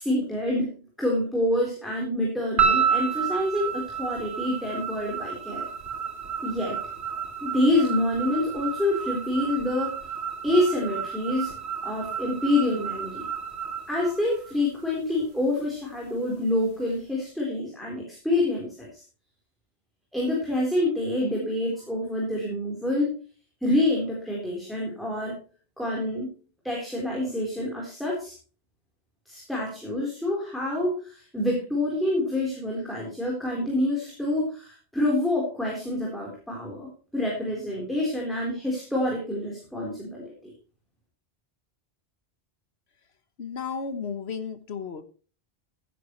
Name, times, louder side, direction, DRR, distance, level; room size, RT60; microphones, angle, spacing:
voice 1, 0.0-5.7 6.4-6.8 7.4-10.0 10.4-11.6 11.8-13.2 13.9-19.0 20.1-23.1 23.6-25.4 25.8-26.3 26.6-28.3 29.3-40.3, left 1 dB, ahead, -3 dB, 3.8 m, -27 dB
sound 1, 2.6-14.9, right 7 dB, 90° right, 3.3 m, -30 dB
voice 2, 43.4-45.0, left 5 dB, 80° left, 10 dB, 1.5 m, -33 dB
15.0 x 10.0 x 3.1 m, 0.38 s
omnidirectional pair, 1.1 m